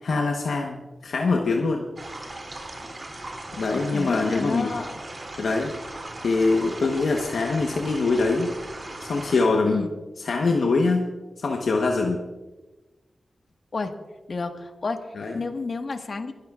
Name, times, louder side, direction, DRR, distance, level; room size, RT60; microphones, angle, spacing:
voice 1, 0.0-1.9 3.6-4.7 5.4-5.7 6.2-8.5 9.0-9.9 10.2-11.1 11.4-12.2 15.2-15.4, left 3 dB, 85° left, 1 dB, 1.0 m, -23 dB
sound 1, 2.0-9.4, right 2 dB, 40° right, 2.9 m, -38 dB
voice 2, 3.7-5.0 9.7-9.9 13.7-13.9 14.3-16.3, left 3 dB, 65° left, 5 dB, 1.5 m, -31 dB
26.5 x 12.0 x 2.4 m, 1.2 s
cardioid pair, 45°, 0 cm